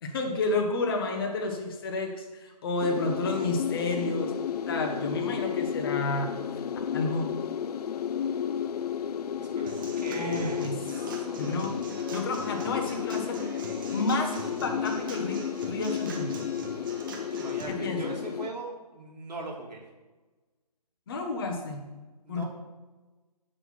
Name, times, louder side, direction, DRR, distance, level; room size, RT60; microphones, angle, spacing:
voice 1, 0.0-4.3 4.7-6.3 6.6-6.7 6.9-7.3 10.1-10.7 11.4-11.7 12.1-13.4 13.9-15.4 15.7-16.3 17.7-18.0 21.1-21.8 22.3-22.5, left 2 dB, 35° left, 3 dB, 1.1 m, -30 dB
sound 1, 2.8-18.5, left 8 dB, 70° left, 0.4 m, -32 dB
voice 2, 9.4-10.6 17.3-19.8 22.2-22.5, right 3 dB, 90° right, -2 dB, 2.8 m, -39 dB
Human voice / Acoustic guitar / Drum, 9.7-17.6, right 3 dB, 30° right, 1.1 m, -43 dB
7.8 x 4.1 x 6.2 m, 1.2 s
hypercardioid pair, 160°, 21 cm